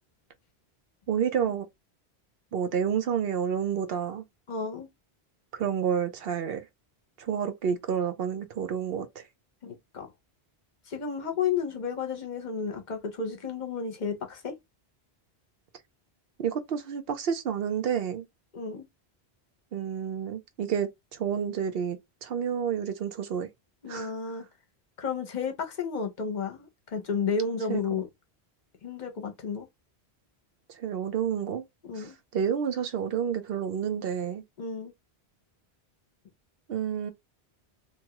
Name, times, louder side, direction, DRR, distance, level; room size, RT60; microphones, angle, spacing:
voice 1, 1.1-1.7 2.5-4.2 5.5-6.6 7.2-9.2 16.4-18.2 19.7-23.5 23.9-24.1 27.7-28.0 30.8-31.6 32.0-32.1 32.3-34.4 36.7-37.1, right 8 dB, 65° right, 0.7 m, -29 dB
voice 2, 4.5-4.9 9.6-10.1 10.9-14.6 18.5-18.9 23.8-24.4 25.0-28.1 28.8-29.7 31.8-32.1 34.6-34.9, left 5 dB, 50° left, 0.8 m, -32 dB
2.8 x 2.2 x 2.9 m
omnidirectional pair, 1.1 m